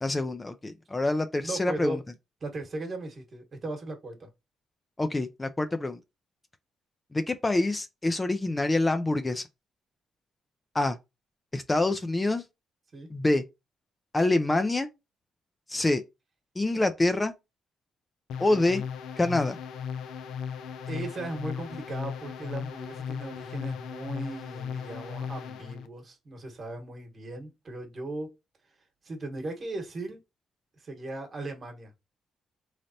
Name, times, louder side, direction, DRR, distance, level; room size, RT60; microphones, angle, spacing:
voice 1, 0.0-2.0 5.0-6.0 7.1-9.4 10.7-11.0 11.5-12.4 13.1-13.4 14.1-14.9 15.7-16.0 16.6-17.3 18.4-18.8 19.2-19.6, left 2 dB, 20° left, 0.4 m, -26 dB
voice 2, 1.4-2.0 2.4-4.3 12.9-13.1 20.9-28.3 29.0-30.2 30.8-31.9, right 2 dB, 45° right, 1.2 m, -37 dB
sound 1, 18.3-25.9, left 7 dB, 80° left, 0.4 m, -37 dB
3.8 x 3.2 x 2.7 m
cardioid pair, 90°, 0 cm